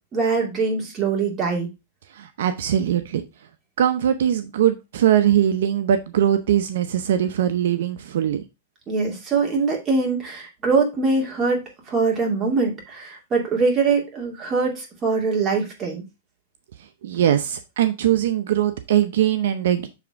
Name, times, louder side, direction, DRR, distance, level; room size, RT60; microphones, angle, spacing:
voice 1, 0.1-1.7 8.9-11.6 11.9-16.0, right 4 dB, 20° right, -1 dB, 2.3 m, -23 dB
voice 2, 2.2-3.2 3.8-8.4 17.0-19.9, right 10 dB, 70° right, 9 dB, 0.7 m, -21 dB
7.1 x 3.5 x 4.8 m, 0.25 s
supercardioid pair, 150°, 0 cm